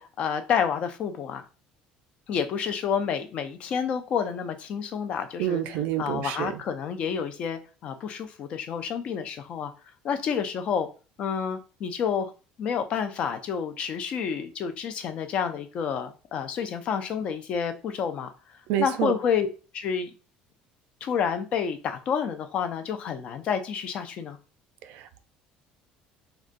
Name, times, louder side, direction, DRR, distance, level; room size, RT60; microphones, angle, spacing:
voice 1, 0.0-1.4 2.3-5.6 6.0-9.7 10.0-10.9 11.2-12.3 12.6-18.3 18.8-19.5 19.7-20.1 21.0-24.4, left 7 dB, 40° left, 8 dB, 0.4 m, -29 dB
voice 2, 5.4-6.5 18.7-19.2 24.9-25.2, right 11 dB, 60° right, 9 dB, 0.4 m, -28 dB
3.8 x 2.2 x 2.4 m, 0.34 s
cardioid pair, 170°, 3 cm